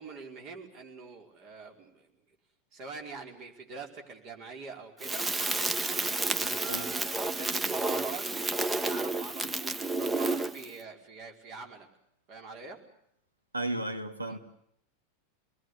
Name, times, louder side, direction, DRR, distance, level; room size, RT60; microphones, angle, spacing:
voice 1, 0.0-2.1 2.7-5.3 5.8-8.3 8.7-11.9 12.3-12.8 14.2-14.4, right 4 dB, 45° right, 5.0 m, -44 dB
Crackle, 5.0-10.7, right 2 dB, 15° right, 1.1 m, -31 dB
voice 2, 13.5-14.4, right 1 dB, 90° right, 2.1 m, -33 dB
27.0 x 20.5 x 8.2 m
figure-of-eight pair, 90°, 0 cm